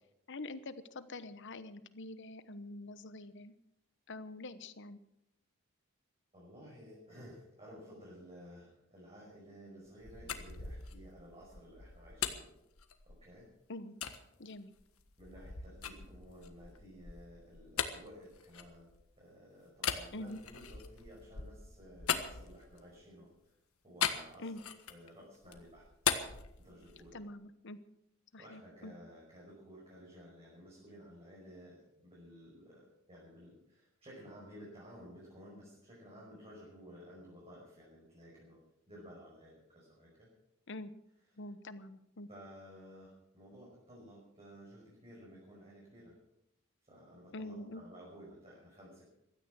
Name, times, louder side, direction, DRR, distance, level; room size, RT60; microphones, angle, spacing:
voice 1, 0.3-3.5 4.1-5.0 13.7-13.9 14.4-14.7 20.1-20.4 24.4-24.6 27.1-27.8 28.3-28.9 40.7-40.9 41.4-42.3 47.3-47.8, left 2 dB, 60° left, 13 dB, 1.1 m, -45 dB
voice 2, 6.3-12.5 13.1-13.5 15.2-23.5 23.8-25.9 26.6-27.2 28.4-38.6 38.9-40.3 42.3-46.2 46.9-49.1, equal, 30° right, -5 dB, 5.7 m, -54 dB
sound 1, 9.9-13.4 14.0-14.2 14.8-19.2 19.8-23.0 24.0-25.1 25.4-27.2, left 8 dB, 80° left, 1.5 m, -39 dB
16.5 x 13.0 x 6.3 m, 0.80 s
head